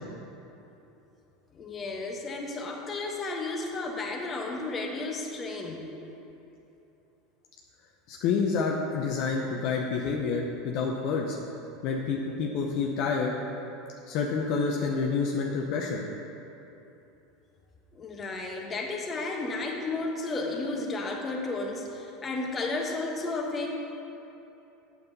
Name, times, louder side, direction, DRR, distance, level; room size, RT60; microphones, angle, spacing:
voice 1, 1.5-5.8 17.9-23.7, left 3 dB, 30° left, 0 dB, 1.3 m, -33 dB
voice 2, 8.1-11.4 11.8-13.3 14.1-16.0, left 5 dB, 60° left, -1 dB, 0.7 m, -28 dB
8.7 x 7.0 x 4.0 m, 3.0 s
hypercardioid pair, 85°, 0 cm